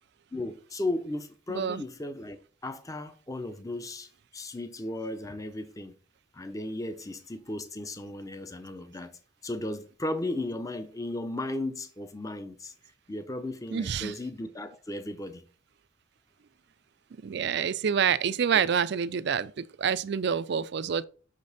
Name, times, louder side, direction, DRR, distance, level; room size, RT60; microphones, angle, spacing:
voice 1, 0.3-2.4 2.6-5.9 6.3-12.7 13.1-15.4, left 2 dB, 15° left, 0.6 m, -35 dB
voice 2, 1.5-1.8 13.7-14.1 17.2-21.0, right 7 dB, 55° right, 0.4 m, -27 dB
6.3 x 5.1 x 4.0 m
head